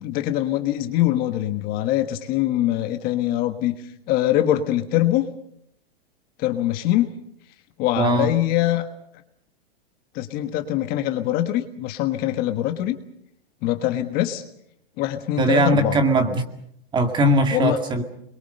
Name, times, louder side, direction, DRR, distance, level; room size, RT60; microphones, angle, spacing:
voice 1, 0.0-3.8 4.1-5.3 6.4-7.1 7.8-8.9 10.1-12.9 13.6-14.4 15.0-16.0 17.5-17.8, left 13 dB, 30° left, 7 dB, 1.4 m, -23 dB
voice 2, 8.0-8.3 15.4-16.5 16.9-18.0, right 1 dB, 15° right, 7 dB, 2.1 m, -20 dB
28.5 x 22.5 x 6.7 m, 0.72 s
hypercardioid pair, 150°, 30 cm